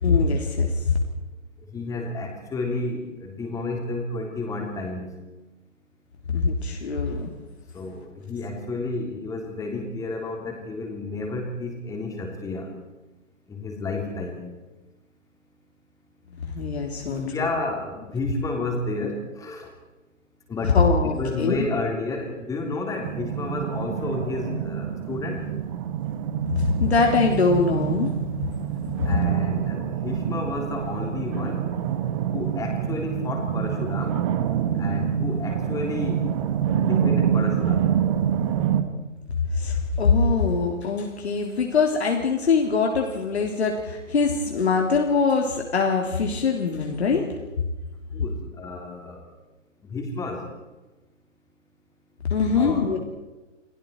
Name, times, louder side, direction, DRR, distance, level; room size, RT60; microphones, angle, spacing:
voice 1, 0.0-1.0 6.3-7.3 16.4-17.2 20.6-21.6 26.5-28.1 39.5-47.3 52.3-53.0, left 4 dB, 55° left, 1 dB, 3.5 m, -22 dB
voice 2, 1.7-5.1 7.7-12.7 13.5-14.4 17.0-19.7 20.5-25.5 29.1-31.7 32.3-34.1 34.8-36.3 36.7-37.9 48.1-49.2 49.9-50.4 52.5-53.0, left 2 dB, 10° left, 2 dB, 3.7 m, -31 dB
sound 1, 23.0-38.8, right 9 dB, 25° right, 1.7 m, -26 dB
29.5 x 21.0 x 4.8 m, 1.1 s
figure-of-eight pair, 135°, 38 cm